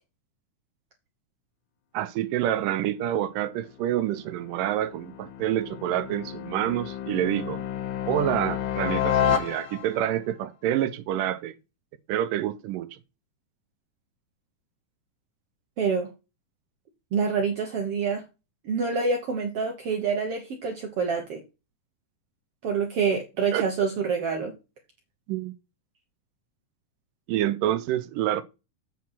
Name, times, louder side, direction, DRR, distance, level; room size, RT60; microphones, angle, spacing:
voice 1, 1.9-7.6 8.1-11.5 12.1-12.9 23.5-23.7 25.3-25.5 27.3-28.4, right 12 dB, 90° right, 2.3 m, -27 dB
sound 1, 3.7-10.1, left 9 dB, 85° left, 2.9 m, -30 dB
voice 2, 15.8-16.1 17.1-18.2 18.6-21.4 22.6-24.5, right 5 dB, 60° right, 1.7 m, -27 dB
8.5 x 4.6 x 5.6 m
omnidirectional pair, 3.8 m